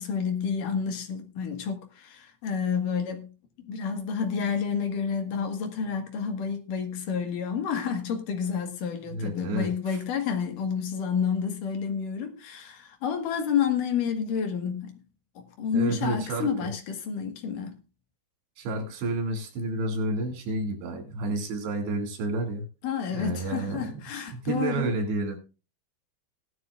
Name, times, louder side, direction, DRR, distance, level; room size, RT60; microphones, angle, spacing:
voice 1, 0.0-3.3 3.6-15.0 15.4-17.7 22.8-24.9, left 7 dB, 60° left, 2.9 m, -29 dB
voice 2, 9.1-10.0 15.7-16.7 18.6-22.7 23.1-23.9 24.3-25.4, right 2 dB, 85° right, 4.7 m, -30 dB
18.0 x 11.5 x 2.4 m
omnidirectional pair, 4.8 m